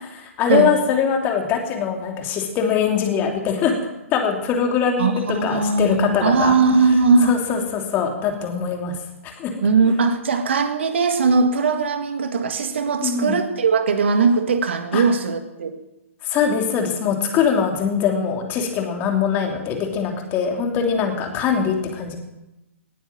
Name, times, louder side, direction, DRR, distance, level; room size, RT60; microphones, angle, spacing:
voice 1, 0.4-3.8 4.1-6.6 7.2-8.9 9.2-9.5 13.0-13.4 14.9-15.0 16.2-22.2, left 7 dB, 25° left, 3 dB, 3.0 m, -22 dB
voice 2, 5.0-7.4 9.6-15.8, right 4 dB, 55° right, 8 dB, 1.8 m, -19 dB
19.0 x 9.3 x 7.3 m, 0.96 s
figure-of-eight pair, 120°, 7 cm